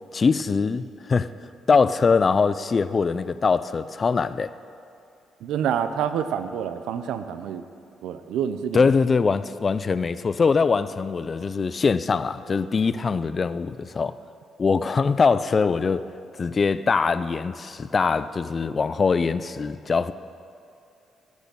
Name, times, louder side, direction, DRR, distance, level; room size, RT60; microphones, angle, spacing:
voice 1, 0.1-1.3 1.7-4.5 8.7-14.2 14.6-16.1 16.4-20.1, left 5 dB, 35° left, 14 dB, 0.4 m, -22 dB
voice 2, 5.4-7.6 8.0-8.9, right 8 dB, 85° right, 11 dB, 0.6 m, -27 dB
15.5 x 6.4 x 7.0 m, 2.7 s
cardioid pair, 90°, 0 cm